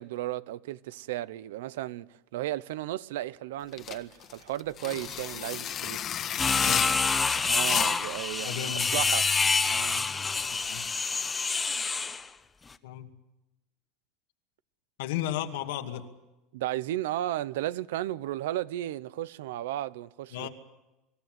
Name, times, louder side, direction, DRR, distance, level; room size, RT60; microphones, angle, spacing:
voice 1, 0.0-6.0 7.4-9.4 9.6-10.1 16.5-20.5, right 14 dB, 90° right, 0.8 m, -34 dB
sound 1, 3.7-8.2, left 9 dB, 40° left, 1.6 m, -33 dB
sound 2, 6.4-12.2, left 4 dB, 20° left, 1.2 m, -27 dB
voice 2, 6.5-6.9 8.4-9.0 10.5-10.9 12.8-13.1 15.0-16.1 20.3-20.5, left 12 dB, 85° left, 2.4 m, -34 dB
26.5 x 15.0 x 9.2 m
supercardioid pair, 120°, 0 cm